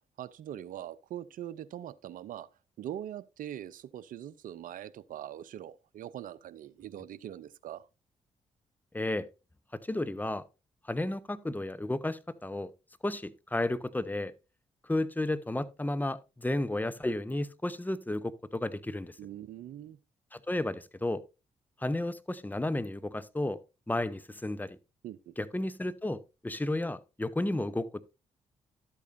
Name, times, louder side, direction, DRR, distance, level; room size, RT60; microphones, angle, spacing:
voice 1, 0.2-2.5 2.8-7.9 19.2-20.0 25.0-25.3, right 11 dB, 65° right, 0.6 m, -42 dB
voice 2, 8.9-9.3 9.9-10.4 10.9-12.7 13.0-14.3 14.9-19.2 20.3-21.2 21.8-23.6 23.9-24.8 25.4-26.2 26.4-28.0, left 1 dB, 10° left, 0.8 m, -32 dB
12.0 x 8.3 x 2.6 m
hypercardioid pair, 40°, 15 cm